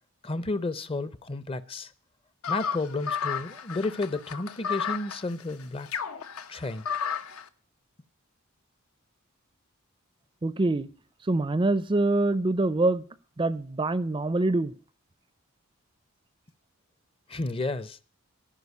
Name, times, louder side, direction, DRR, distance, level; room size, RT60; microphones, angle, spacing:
voice 1, 0.2-1.9 2.5-5.9 6.5-6.8 17.3-18.0, left 2 dB, 25° left, 0.6 m, -32 dB
sound 1, 2.4-7.4, left 7 dB, 80° left, 0.9 m, -33 dB
voice 2, 10.4-10.9 11.2-13.0 13.4-14.7, right 2 dB, 25° right, 0.4 m, -25 dB
14.0 x 5.3 x 8.2 m
head